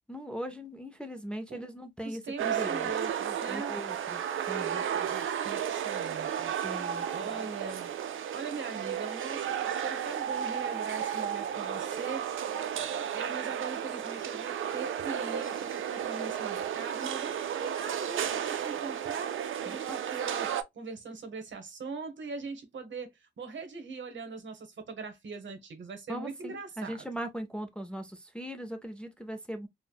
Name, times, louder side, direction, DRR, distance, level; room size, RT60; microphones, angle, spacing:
voice 1, 0.1-2.9 3.5-4.2 4.5-5.2 6.6-7.1 19.9-20.0 26.1-29.7, equal, 5° left, 0.4 m, -39 dB
voice 2, 2.0-3.8 5.1-6.6 7.1-7.9 8.3-19.3 19.6-27.1, right 4 dB, 70° right, 0.9 m, -41 dB
sound 1, 2.4-20.6, right 9 dB, 85° right, 0.4 m, -33 dB
4.3 x 2.1 x 2.2 m
wide cardioid pair, 170°, 20 cm